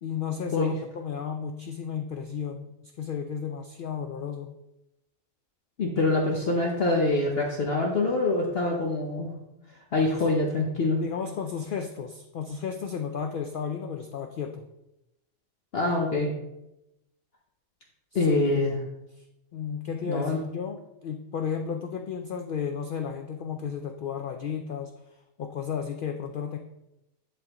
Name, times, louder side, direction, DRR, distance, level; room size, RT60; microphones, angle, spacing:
voice 1, 0.0-4.5 10.1-10.3 11.0-14.6 18.1-18.5 19.1-19.2 19.5-24.9 25.4-26.6, left 7 dB, 70° left, 5 dB, 0.5 m, -33 dB
voice 2, 5.8-9.3 9.9-11.0 15.7-16.3 18.1-18.7 20.1-20.4, left 2 dB, 50° left, -1 dB, 1.0 m, -25 dB
11.0 x 3.7 x 2.9 m, 0.90 s
omnidirectional pair, 1.4 m